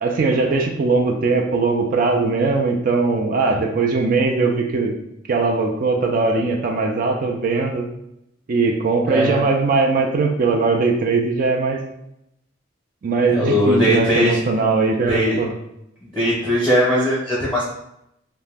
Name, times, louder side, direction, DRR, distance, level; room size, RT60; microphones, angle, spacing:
voice 1, 0.0-4.9 5.3-7.9 8.5-11.8 13.0-15.5, right 3 dB, 45° right, 2 dB, 0.4 m, -20 dB
voice 2, 13.3-14.4 14.9-15.4 16.0-17.6, equal, 5° left, -9 dB, 0.8 m, -19 dB
2.7 x 2.0 x 3.4 m, 0.81 s
head